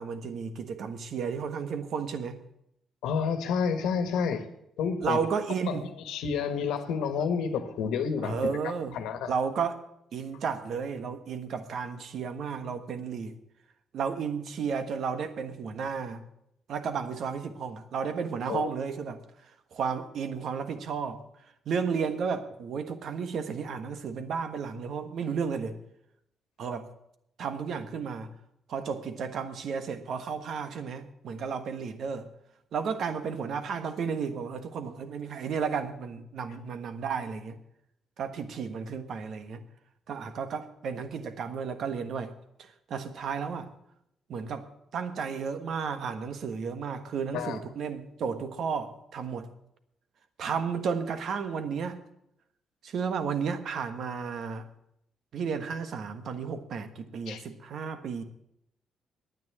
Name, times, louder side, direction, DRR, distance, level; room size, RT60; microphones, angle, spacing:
voice 1, 0.0-2.4 5.0-5.9 8.2-8.9 9.2-9.8 10.1-13.3 13.9-16.2 16.7-19.2 19.7-21.2 21.6-25.8 26.6-26.9 27.4-28.3 28.7-32.3 32.7-37.6 38.2-39.6 40.1-42.3 42.9-43.7 44.3-44.6 44.9-49.5 50.4-52.0 52.8-54.6 55.3-58.2, right 6 dB, 65° right, 9 dB, 1.3 m, -33 dB
voice 2, 3.0-4.5 4.8-5.2 5.7-5.8 6.1-8.4 8.9-9.3 18.5-18.7 47.3-47.6 57.3-57.4, left 6 dB, 90° left, 8 dB, 1.4 m, -29 dB
10.5 x 9.4 x 8.7 m, 0.78 s
cardioid pair, 90°, 0 cm